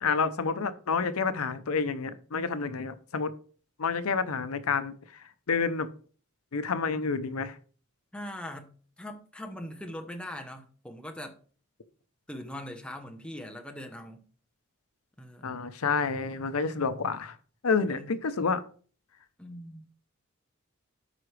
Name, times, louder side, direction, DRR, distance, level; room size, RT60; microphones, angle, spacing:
voice 1, 0.0-3.3 3.8-5.9 6.5-7.6 15.4-17.4 17.6-18.6, left 5 dB, 85° left, 0.7 m, -29 dB
voice 2, 8.1-11.4 12.3-14.2 15.2-15.6 17.9-18.1 19.4-19.8, left 1 dB, 5° left, 0.9 m, -41 dB
12.5 x 4.9 x 3.3 m
head